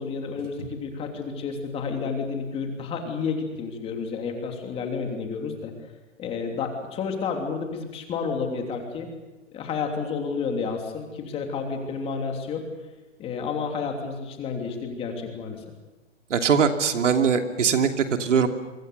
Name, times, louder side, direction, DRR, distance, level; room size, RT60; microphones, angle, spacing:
voice 1, 0.0-5.7 6.2-9.1 9.5-12.6 13.2-15.6, left 5 dB, 15° left, 3 dB, 3.1 m, -30 dB
voice 2, 16.3-17.9 18.2-18.5, right 6 dB, 70° right, 6 dB, 2.9 m, -21 dB
28.0 x 24.5 x 6.9 m, 1.2 s
hypercardioid pair, 155°, 37 cm